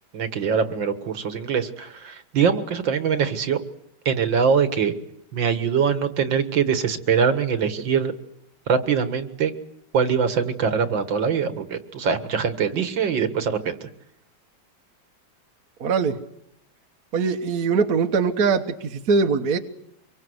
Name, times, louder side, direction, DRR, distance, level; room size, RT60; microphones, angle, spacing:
voice 1, 0.1-3.6 4.1-4.9 5.3-8.1 8.7-9.5 9.9-13.9, right 6 dB, 70° right, 10 dB, 2.2 m, -23 dB
voice 2, 15.8-16.2 17.1-19.6, right 5 dB, 50° right, 5 dB, 1.6 m, -22 dB
25.5 x 23.5 x 8.0 m, 0.76 s
omnidirectional pair, 2.2 m